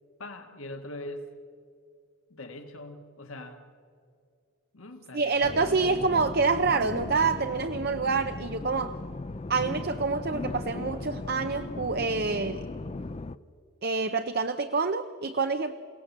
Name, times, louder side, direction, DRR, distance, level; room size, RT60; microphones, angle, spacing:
voice 1, 0.2-1.3 2.3-3.6 4.7-6.0, left 1 dB, 75° left, 5 dB, 1.8 m, -42 dB
voice 2, 5.1-9.0 9.5-12.7 13.8-15.7, right 4 dB, 50° right, 9 dB, 0.7 m, -27 dB
sound 1, 5.4-13.4, left 2 dB, 30° left, 0.5 m, -37 dB
29.0 x 17.5 x 7.3 m, 2.3 s
head